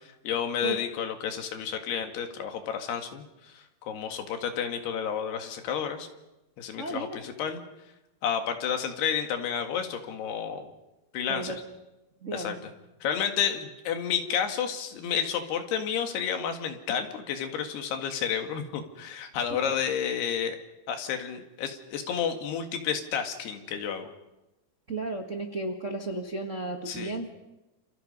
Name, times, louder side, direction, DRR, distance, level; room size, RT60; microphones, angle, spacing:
voice 1, 0.2-6.1 6.6-7.6 8.2-10.7 11.1-11.5 12.3-12.7 13.0-20.6 20.9-24.1 26.9-27.2, left 8 dB, 80° left, 6 dB, 3.9 m, -31 dB
voice 2, 6.8-7.2 11.3-11.6 12.2-12.6 24.9-27.4, right 2 dB, 65° right, 2 dB, 0.7 m, -34 dB
29.0 x 28.5 x 5.5 m, 0.98 s
omnidirectional pair, 4.6 m